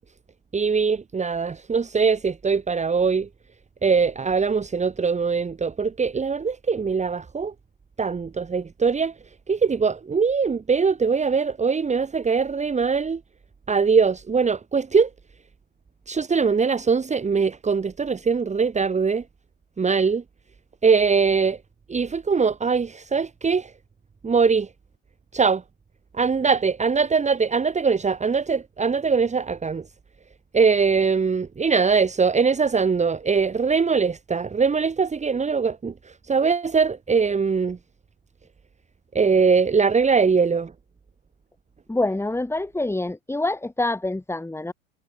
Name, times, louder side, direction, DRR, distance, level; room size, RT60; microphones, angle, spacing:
voice 1, 0.5-3.3 3.8-7.5 8.0-9.1 9.5-13.2 13.7-15.1 16.1-19.2 19.8-20.2 20.8-21.6 21.9-23.7 24.2-24.7 25.3-25.6 26.1-29.8 30.5-35.9 36.3-37.8 39.1-40.7, right 5 dB, 15° right, 2.5 m, -21 dB
voice 2, 41.9-44.7, left 2 dB, 5° left, 4.3 m, -26 dB
hypercardioid pair, 85°, 40 cm